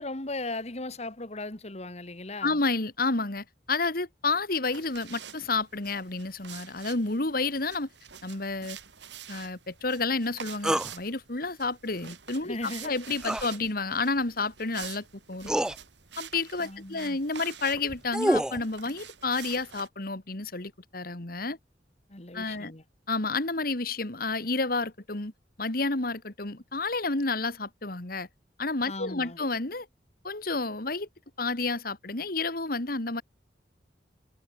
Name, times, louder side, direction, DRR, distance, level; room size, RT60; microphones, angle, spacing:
voice 1, 0.0-2.6 12.4-13.0 16.6-17.2 22.1-22.8 28.9-29.4, left 2 dB, 40° left, 2.1 m, -37 dB
voice 2, 2.4-7.9 8.2-8.8 9.3-15.5 16.2-21.6 22.3-22.7 23.1-25.3 25.6-28.3 28.6-29.9 30.2-31.1 31.4-33.2, left 3 dB, 55° left, 2.3 m, -30 dB
sound 1, 4.7-19.9, right 8 dB, 85° right, 3.5 m, -47 dB
sound 2, 10.6-10.9 13.2-13.5 14.8-14.9 15.4-15.8 17.7-18.6, right 1 dB, 5° right, 0.4 m, -26 dB
head